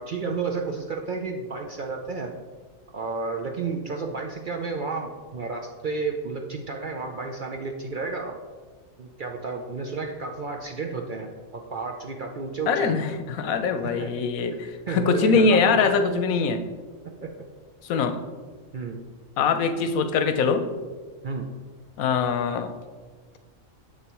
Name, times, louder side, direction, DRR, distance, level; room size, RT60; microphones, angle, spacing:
voice 1, 0.0-2.3 2.9-8.4 9.0-13.0 13.8-14.1 14.9-16.0 17.2-17.3 18.7-19.0 21.2-21.5, right 4 dB, 60° right, 2 dB, 0.5 m, -32 dB
voice 2, 12.7-16.6 17.8-18.2 19.4-20.7 22.0-22.7, left 5 dB, 90° left, 9 dB, 1.1 m, -23 dB
7.3 x 6.8 x 3.0 m, 1.4 s
omnidirectional pair, 1.4 m